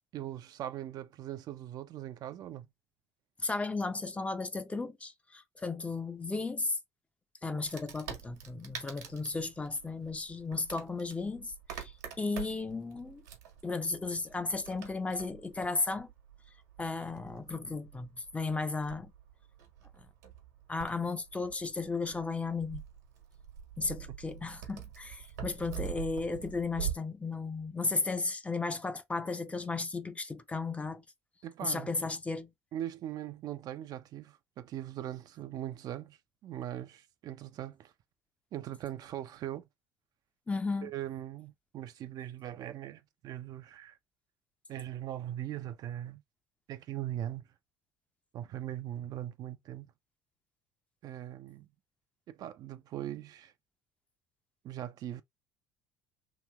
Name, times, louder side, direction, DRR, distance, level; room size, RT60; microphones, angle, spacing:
voice 1, 0.1-2.7 31.4-31.9 32.7-37.9 38.5-39.6 40.8-44.0 44.7-46.2 46.7-47.4 48.3-49.9 51.0-51.7 52.3-53.5 54.6-55.2, right 12 dB, 50° right, 0.4 m, -40 dB
voice 2, 3.4-6.8 7.4-13.2 13.6-16.1 16.8-19.1 20.7-22.8 23.8-31.0 31.6-32.5 40.5-40.9, left 3 dB, 15° left, 0.6 m, -35 dB
Wood, 7.6-26.9, right 10 dB, 80° right, 1.1 m, -45 dB
2.9 x 2.9 x 2.3 m
hypercardioid pair, 65°, 8 cm